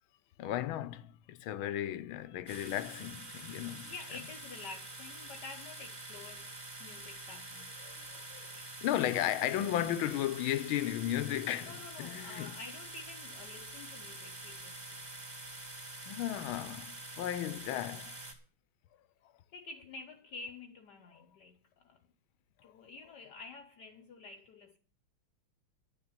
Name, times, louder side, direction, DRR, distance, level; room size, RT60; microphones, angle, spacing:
voice 1, 0.4-3.9 7.8-12.6 16.1-18.2, left 12 dB, 75° left, 1.5 m, -35 dB
sound 1, 2.5-18.3, right 2 dB, 30° right, 2.5 m, -46 dB
voice 2, 3.7-7.9 8.5-8.7 11.7-15.1 19.5-22.1 22.6-24.8, left 4 dB, 60° left, 1.4 m, -49 dB
11.0 x 7.3 x 8.7 m
omnidirectional pair, 2.3 m